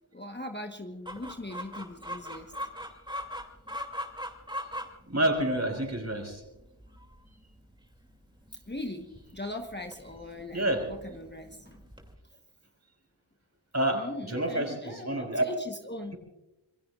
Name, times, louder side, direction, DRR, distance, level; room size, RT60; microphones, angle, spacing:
voice 1, 0.1-2.5 8.7-11.8 13.9-16.1, left 1 dB, 20° left, 4 dB, 1.1 m, -40 dB
Chicken rooster, 1.1-12.2, equal, 10° right, 2.6 m, -42 dB
voice 2, 5.1-6.4 10.5-10.8 13.7-15.4, right 1 dB, 30° right, 3 dB, 5.0 m, -28 dB
27.0 x 21.5 x 2.4 m, 0.99 s
wide cardioid pair, 55°, 50 cm